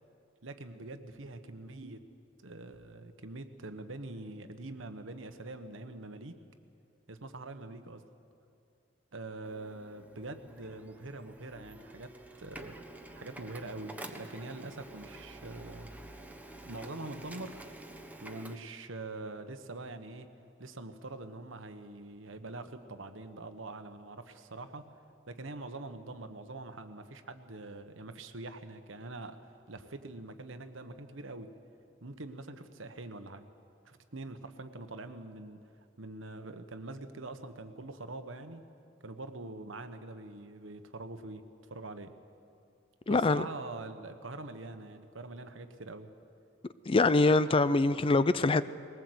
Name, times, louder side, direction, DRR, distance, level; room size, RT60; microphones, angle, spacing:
voice 1, 0.4-2.0 2.4-6.4 7.1-8.0 9.1-12.8 13.1-15.9 16.6-17.6 18.2-20.3 20.6-24.9 25.3-31.5 32.0-33.4 33.8-35.6 36.0-38.6 39.0-41.4 41.7-42.1 43.1-46.1, right 2 dB, 75° right, 9 dB, 1.3 m, -44 dB
Printer, 9.4-18.6, right 1 dB, 10° right, 1.1 m, -49 dB
voice 2, 43.1-43.5 46.9-48.6, left 3 dB, 25° left, 15 dB, 0.5 m, -24 dB
21.0 x 19.0 x 8.0 m, 2.5 s
head